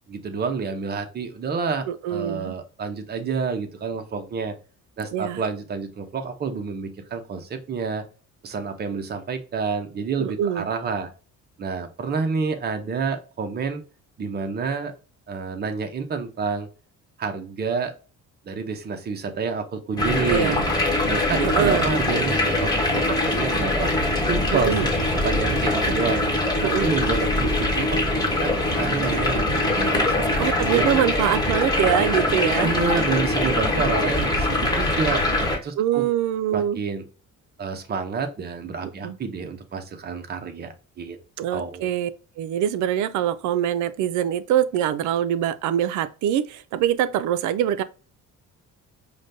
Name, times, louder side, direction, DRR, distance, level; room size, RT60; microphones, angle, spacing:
voice 1, 0.1-4.5 5.0-8.0 8.4-11.1 11.6-13.8 14.2-14.9 15.3-16.7 17.2-17.9 18.5-20.6 21.1-23.9 24.2-26.2 26.6-31.0 32.6-36.0 36.5-37.0 37.6-41.2 41.5-41.9, right 5 dB, 35° right, 0.7 m, -29 dB
voice 2, 1.9-2.5 5.1-5.4 10.2-10.7 20.3-20.7 21.4-21.9 24.5-24.9 26.6-26.9 30.4-32.7 35.8-36.8 39.0-39.2 41.4-42.1 42.4-47.8, right 10 dB, 75° right, 0.5 m, -24 dB
sound 1, 20.0-35.6, left 1 dB, 15° left, 1.1 m, -23 dB
5.0 x 2.2 x 2.6 m
cardioid pair, 130°, 30 cm